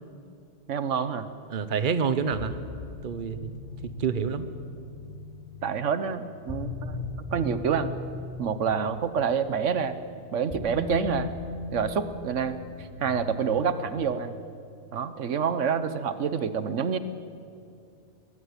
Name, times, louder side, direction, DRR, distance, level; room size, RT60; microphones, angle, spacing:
voice 1, 0.7-1.3 5.6-7.0 7.3-8.0 8.4-10.0 10.3-11.3 11.7-14.3 14.9-17.0, right 7 dB, 80° right, 12 dB, 1.2 m, -27 dB
voice 2, 1.5-2.5 3.0-3.5 3.8-4.5, right 6 dB, 45° right, 12 dB, 1.1 m, -28 dB
sound 1, 2.3-13.9, left 3 dB, 20° left, 4.6 m, -39 dB
21.5 x 16.0 x 9.7 m, 2.4 s
omnidirectional pair, 1.2 m